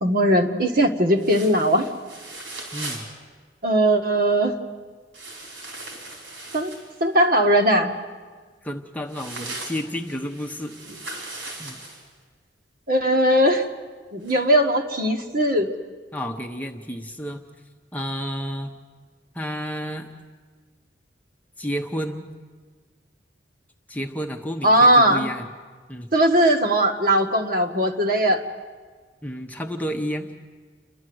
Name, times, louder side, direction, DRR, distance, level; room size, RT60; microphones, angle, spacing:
voice 1, 0.0-1.9 3.6-4.5 6.5-6.7 7.0-7.9 12.9-13.6 14.1-15.7 24.6-25.3 26.1-28.4, right 1 dB, 50° right, 4 dB, 1.5 m, -19 dB
sound 1, 1.2-3.1 5.1-7.0 9.1-12.0 14.2-14.3, right 2 dB, 85° right, 4.6 m, -38 dB
voice 2, 2.7-3.0 8.6-10.8 11.6-11.8 16.1-17.4 17.9-18.7 19.3-20.1 21.6-22.3 23.9-25.5 25.9-26.1 29.2-30.3, equal, 10° left, 3 dB, 1.0 m, -31 dB
29.5 x 11.5 x 7.9 m, 1.5 s
head